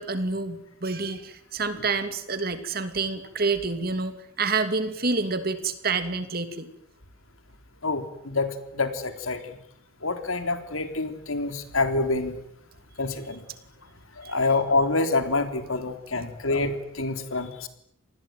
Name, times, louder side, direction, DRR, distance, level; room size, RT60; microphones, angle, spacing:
voice 1, 0.0-6.7 14.2-14.5 16.1-16.3, right 4 dB, 45° right, 10 dB, 2.8 m, -28 dB
voice 2, 7.8-8.5 8.7-9.4 10.0-12.3 13.0-13.4 14.2-17.7, left 3 dB, 85° left, 8 dB, 3.7 m, -26 dB
28.0 x 20.0 x 9.3 m, 0.74 s
head